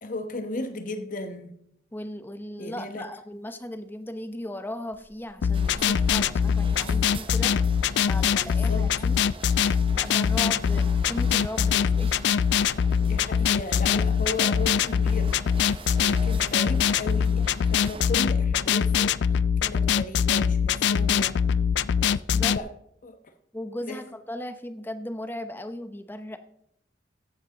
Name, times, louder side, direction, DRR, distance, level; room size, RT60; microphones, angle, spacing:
voice 1, 0.0-1.5 2.6-3.1 8.4-8.9 13.0-15.4 16.0-19.1 19.6-21.4 22.0-22.2 22.5-22.7 23.0-23.2 23.8-24.0, left 2 dB, 45° left, 1.0 m, -35 dB
voice 2, 1.9-7.6 8.0-9.2 9.9-12.2 22.3-22.6 23.5-26.4, left 1 dB, 10° left, 0.7 m, -37 dB
sound 1, 4.9-18.4, right 3 dB, 30° right, 0.7 m, -44 dB
sound 2, 5.4-22.6, left 7 dB, 65° left, 0.3 m, -23 dB
14.5 x 8.1 x 3.9 m
head